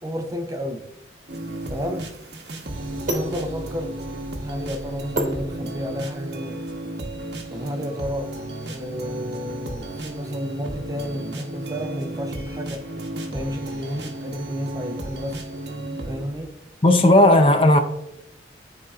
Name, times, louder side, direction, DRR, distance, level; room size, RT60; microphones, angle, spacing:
voice 1, 0.0-0.9 1.7-2.1 3.0-4.0 4.4-6.6 7.5-8.4 8.7-12.9 13.3-15.5 16.1-16.5, equal, 20° right, 0.7 m, -31 dB
sound 1, 1.2-6.2, right 1 dB, 40° right, 1.2 m, -32 dB
sound 2, 1.3-16.3, right 1 dB, 65° right, 1.1 m, -33 dB
voice 2, 16.8-17.8, left 1 dB, 30° left, 0.5 m, -14 dB
12.5 x 4.5 x 2.4 m
head